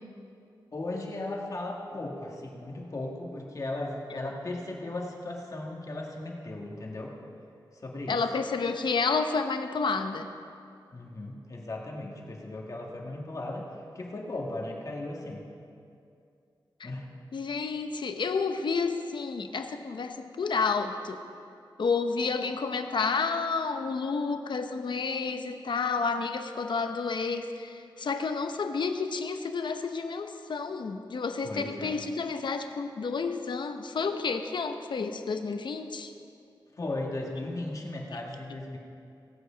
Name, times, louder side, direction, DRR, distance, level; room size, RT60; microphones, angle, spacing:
voice 1, 0.7-7.1 7.7-8.2 10.9-13.7 13.9-15.4 16.8-17.1 31.4-32.0 36.7-38.8, left 2 dB, 45° left, -1 dB, 1.8 m, -36 dB
voice 2, 8.1-10.3 16.8-16.9 17.3-21.2 21.8-36.1, left 4 dB, 70° left, 7 dB, 0.8 m, -30 dB
17.5 x 8.0 x 5.0 m, 2.5 s
wide cardioid pair, 130°, 8 cm